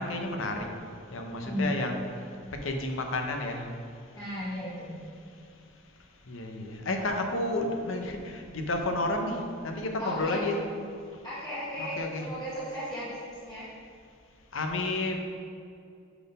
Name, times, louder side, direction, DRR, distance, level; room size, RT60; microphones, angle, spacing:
voice 1, 0.0-4.2 5.2-10.6 11.1-11.2 11.8-12.3 14.5-15.2, left 2 dB, 80° left, 3 dB, 0.8 m, -32 dB
voice 2, 1.3-1.7 4.2-5.0 10.0-10.4 11.2-13.7, equal, 20° left, -10 dB, 1.0 m, -35 dB
5.7 x 4.0 x 5.3 m, 2.4 s
head